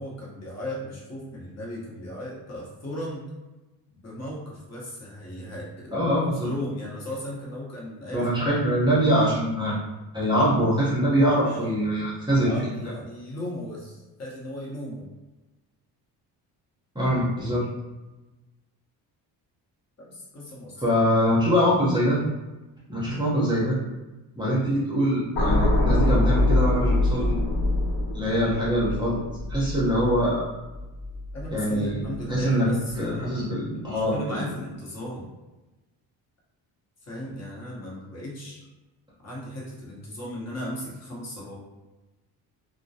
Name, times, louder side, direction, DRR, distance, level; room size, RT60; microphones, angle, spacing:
voice 1, 0.0-3.2 3.9-8.3 11.4-11.7 12.3-15.1 20.0-21.3 31.3-33.3 33.7-35.3 37.0-38.6 39.2-41.5, left 1 dB, 35° left, -4 dB, 1.0 m, -36 dB
voice 2, 5.9-6.5 8.1-9.8 10.1-12.5 16.9-17.6 20.8-22.2 22.9-23.8 24.4-27.3 28.1-29.2 29.5-30.5 31.5-32.0 32.3-32.7 33.0-34.5, equal, 10° right, -8 dB, 0.8 m, -23 dB
sound 1, 25.4-31.6 32.0-32.3, left 1 dB, 70° left, 1.0 m, -24 dB
2.2 x 2.1 x 2.7 m, 1.1 s
cardioid pair, 75°, 44 cm